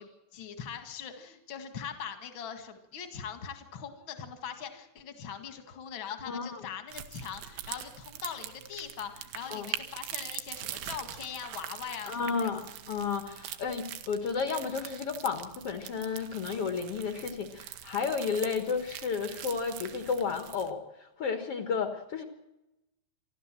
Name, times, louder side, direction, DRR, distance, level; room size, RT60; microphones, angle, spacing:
voice 1, 0.0-12.5, left 7 dB, 60° left, 8 dB, 1.3 m, -41 dB
voice 2, 6.3-6.6 9.5-9.7 12.1-22.2, left 5 dB, 80° left, 6 dB, 1.3 m, -32 dB
sound 1, 6.9-20.7, right 12 dB, 75° right, 3.5 m, -43 dB
28.0 x 12.5 x 7.5 m, 0.92 s
omnidirectional pair, 5.4 m